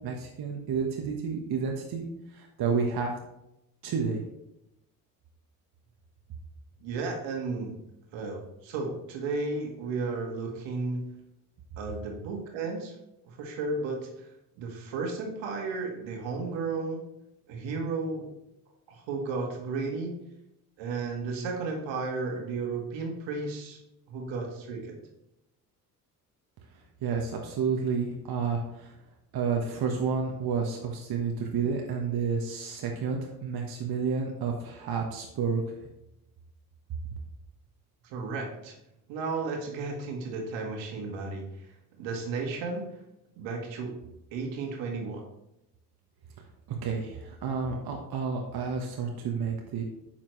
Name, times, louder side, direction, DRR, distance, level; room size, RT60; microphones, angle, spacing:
voice 1, 0.0-2.1 2.3-3.1 3.8-4.2 27.0-28.9 29.3-35.6 46.8-49.8, right 5 dB, 55° right, 1 dB, 1.3 m, -30 dB
voice 2, 6.8-7.8 8.1-11.0 11.8-12.9 13.2-14.1 14.6-17.0 17.5-18.3 18.9-20.1 20.8-23.8 24.1-25.0 38.0-38.7 39.1-41.5 42.0-42.8 43.4-43.9 44.3-45.2, right 3 dB, 75° right, 2 dB, 1.8 m, -33 dB
8.8 x 6.0 x 3.2 m, 0.86 s
hypercardioid pair, 55°, 46 cm